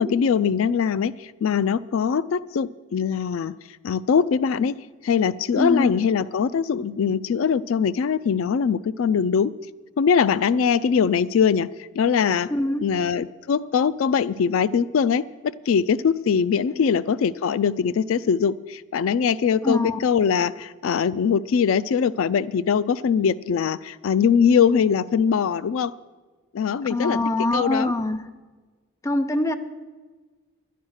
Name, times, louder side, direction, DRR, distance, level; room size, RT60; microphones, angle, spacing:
voice 1, 0.0-3.5 3.8-4.8 5.0-9.5 10.0-12.5 12.8-25.9 26.5-27.2 27.5-27.9, left 6 dB, 80° left, 17 dB, 0.4 m, -22 dB
voice 2, 5.5-5.9 12.5-12.9 16.7-16.9 19.6-20.0 26.9-28.3 29.0-29.5, left 1 dB, 15° left, 7 dB, 0.6 m, -24 dB
11.5 x 10.0 x 6.4 m, 1.3 s
head